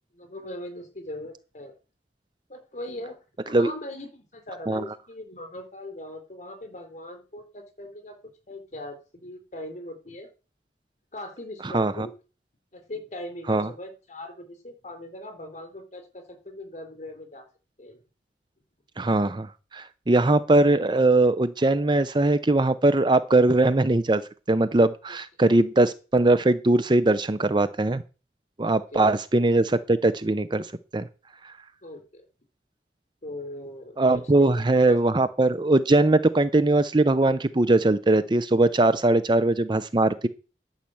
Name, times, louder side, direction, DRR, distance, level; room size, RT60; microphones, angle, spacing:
voice 1, 0.1-1.7 2.5-3.2 3.4-8.1 8.5-10.3 11.1-12.1 12.7-17.5 17.8-18.0 28.6-29.1 31.8-32.2 33.2-35.0, left 1 dB, 40° left, 6 dB, 3.9 m, -40 dB
voice 2, 11.6-12.1 13.5-13.7 19.0-19.5 19.7-24.2 24.5-28.0 28.6-30.7 30.9-31.1 34.0-40.3, right 2 dB, 25° right, 14 dB, 0.6 m, -21 dB
11.5 x 5.8 x 7.7 m, 0.34 s
head